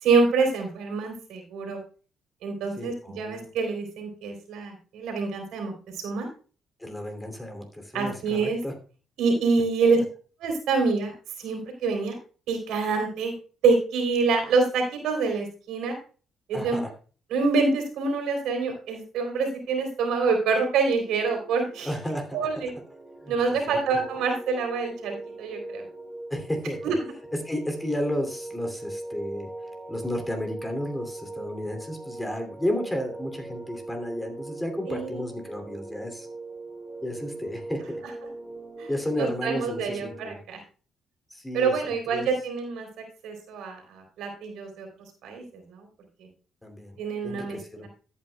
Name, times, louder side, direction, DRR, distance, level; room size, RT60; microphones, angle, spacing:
voice 1, 0.0-1.8 2.4-6.3 7.9-8.6 9.2-10.0 10.4-12.2 12.5-13.3 13.6-15.9 16.5-16.8 17.3-21.9 22.3-22.7 23.3-25.8 26.8-27.0 34.9-35.2 38.8-38.9 39.2-40.6 41.5-42.9 43.2-44.9 45.2-45.9 46.2-46.3 47.0-47.9, right 4 dB, 85° right, 3 dB, 3.2 m, -26 dB
voice 2, 2.8-3.5 6.8-8.7 16.5-16.9 21.8-22.4 23.2-23.4 23.7-23.8 26.3-26.9 27.3-29.5 29.9-36.3 37.0-38.0 38.9-40.4 41.3-42.3 46.6-47.0 47.2-47.9, left 1 dB, 10° left, 5 dB, 2.6 m, -32 dB
sound 1, 20.8-40.3, right 2 dB, 10° right, 4.9 m, -41 dB
14.0 x 8.6 x 2.2 m, 0.38 s
cardioid pair, 90°, 0 cm